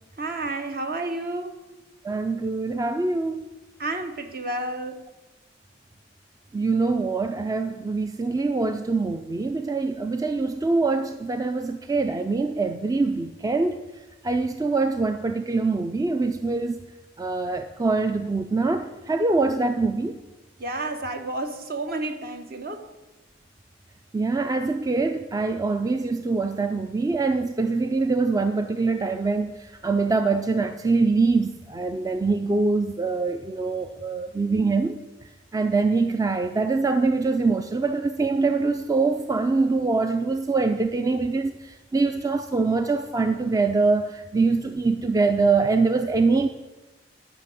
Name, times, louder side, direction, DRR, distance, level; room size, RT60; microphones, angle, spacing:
voice 1, 0.2-1.6 3.8-5.0 20.6-22.9, right 2 dB, 55° right, 7 dB, 1.1 m, -31 dB
voice 2, 2.0-3.5 6.5-13.8 14.2-16.8 17.2-20.2 24.1-35.0 35.5-46.5, right 3 dB, 20° right, 8 dB, 0.4 m, -24 dB
12.0 x 5.8 x 8.4 m, 1.1 s
head